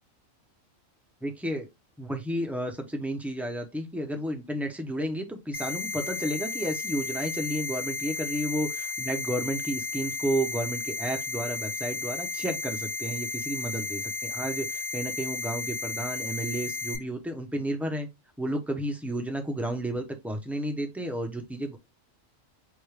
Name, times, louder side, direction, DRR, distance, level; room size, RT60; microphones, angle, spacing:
voice 1, 1.2-1.7 2.0-18.1 18.4-21.8, right 1 dB, ahead, 0.4 m, -32 dB
sound 1, 5.5-17.0, left 4 dB, 75° left, 2.5 m, -33 dB
5.2 x 2.4 x 3.2 m
omnidirectional pair, 1.4 m